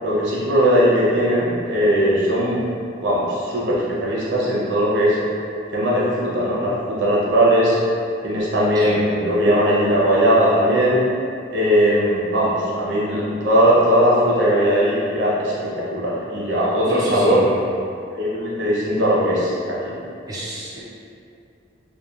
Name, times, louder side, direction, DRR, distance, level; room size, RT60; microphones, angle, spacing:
voice 1, 0.0-2.6 3.0-5.2 5.7-7.8 8.2-11.0 11.5-17.4 18.1-19.9, equal, 70° right, -7 dB, 0.7 m, -19 dB
voice 2, 16.9-17.7 20.3-20.8, right 1 dB, 20° right, -8 dB, 0.3 m, -31 dB
2.9 x 2.2 x 2.4 m, 2.5 s
head